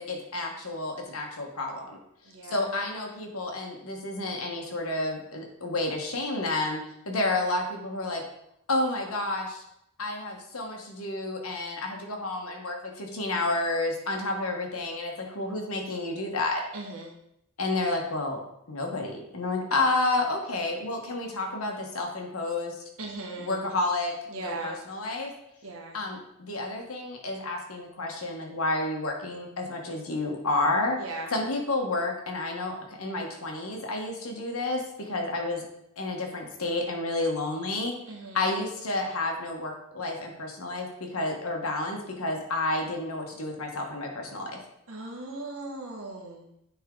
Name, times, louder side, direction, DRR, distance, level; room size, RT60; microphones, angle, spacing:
voice 1, 0.0-2.0 2.5-6.8 7.0-8.2 8.7-9.6 10.0-16.6 17.6-18.4 18.7-22.8 23.4-25.3 25.9-31.0 31.3-35.6 36.0-37.9 38.3-44.6, left 2 dB, 80° left, 2 dB, 1.4 m, -30 dB
voice 2, 2.2-2.7 16.7-17.2 23.0-23.6 24.3-24.8 25.6-26.0 31.0-31.3 38.1-38.5 44.9-46.5, right 2 dB, 70° right, 0 dB, 1.4 m, -38 dB
9.4 x 3.6 x 3.8 m, 0.79 s
head